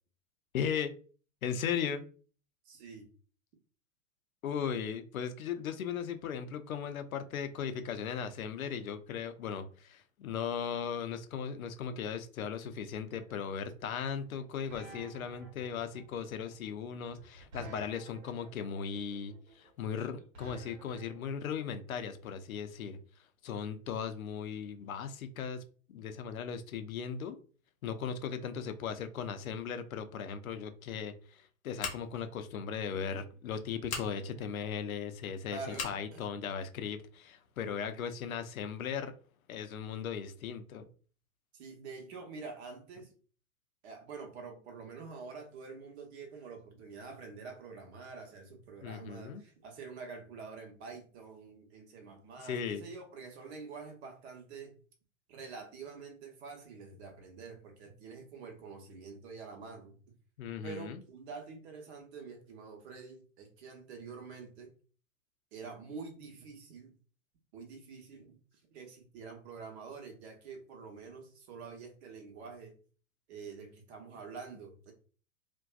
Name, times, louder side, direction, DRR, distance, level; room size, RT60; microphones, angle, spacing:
voice 1, 0.5-0.9 1.4-2.0 4.4-23.0 23.4-25.6 25.9-27.4 27.8-39.1 39.5-40.9 48.8-49.4 52.4-52.8 60.4-61.0, left 7 dB, 80° left, 9 dB, 0.5 m, -37 dB
voice 2, 2.6-3.1 35.5-36.2 41.5-43.1 43.8-54.8 55.3-59.9 60.6-64.7 65.5-66.9 67.5-68.3 68.7-72.8 73.3-74.9, right 4 dB, 50° right, 3 dB, 0.9 m, -47 dB
sound 1, 13.1-21.3, right 2 dB, 75° right, 1.0 m, -51 dB
Scissors, 31.8-32.3 33.8-34.1 35.7-36.0, left 5 dB, 20° left, 0.4 m, -38 dB
2.5 x 2.2 x 2.3 m, 0.40 s
hypercardioid pair, 110°, 41 cm